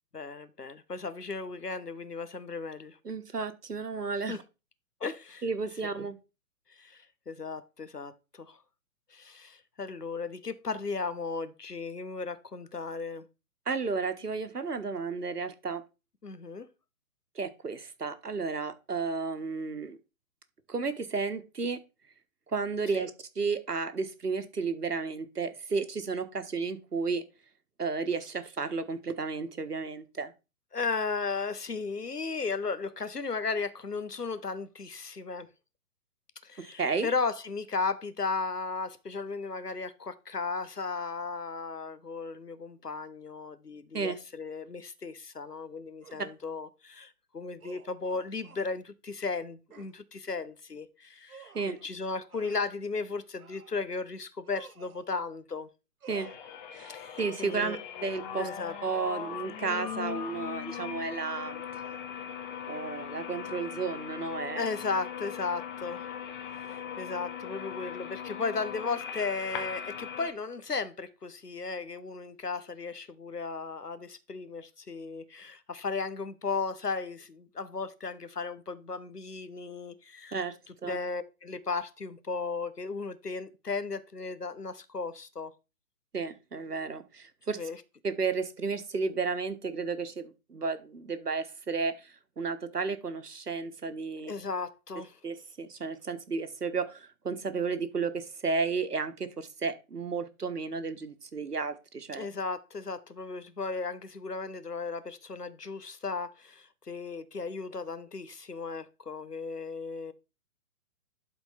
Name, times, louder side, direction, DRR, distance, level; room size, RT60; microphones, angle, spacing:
voice 1, 0.1-3.0 4.3-4.4 5.0-5.4 6.8-8.6 9.1-13.3 16.2-16.7 22.9-23.1 30.7-35.5 36.4-55.7 56.9-57.8 58.4-58.7 64.6-66.1 66.5-80.4 80.9-85.5 87.6-87.8 94.2-95.2 102.2-110.1, left 4 dB, 90° left, 1.2 m, -35 dB
voice 2, 3.0-4.4 5.4-6.2 13.7-15.8 17.3-20.0 20.7-21.8 22.5-23.1 23.4-27.2 27.8-30.3 36.6-37.1 43.9-44.1 51.5-51.8 56.1-56.3 56.7-58.5 58.8-61.6 62.7-64.6 80.3-80.5 80.8-81.0 86.1-87.6 88.0-94.3 95.2-102.2, right 4 dB, 85° right, 1.4 m, -33 dB
sound 1, 46.0-46.3 47.6-48.7 49.7-49.9 51.3-51.8 52.3-52.8 53.4-53.8 54.4-55.0 56.0-56.4, right 6 dB, 70° right, 1.2 m, -51 dB
sound 2, 56.1-70.3, left 8 dB, 30° left, 1.5 m, -39 dB
11.5 x 4.5 x 4.3 m
figure-of-eight pair, 130°, 46 cm